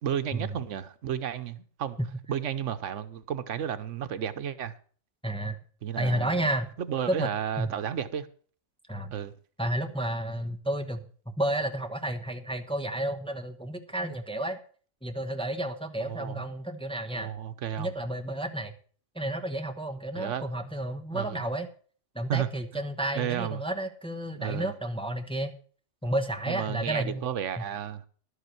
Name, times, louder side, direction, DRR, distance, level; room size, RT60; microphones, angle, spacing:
voice 1, 0.0-2.0 2.3-4.7 5.8-6.5 6.8-8.3 9.1-9.3 16.0-16.4 17.1-17.9 20.1-20.5 21.1-21.4 22.3-22.5 22.7-22.8 23.1-23.6 24.4-24.7 26.5-28.0, right 9 dB, 85° right, 1.2 m, -32 dB
voice 2, 5.2-5.6 6.0-6.7 7.1-7.3 7.6-7.7 8.9-9.1 9.6-14.6 15.0-17.3 17.8-18.7 19.1-21.7 22.1-25.5 26.0-27.3 27.6-27.7, right 1 dB, 5° left, 0.9 m, -31 dB
12.0 x 8.2 x 5.9 m
omnidirectional pair, 1.2 m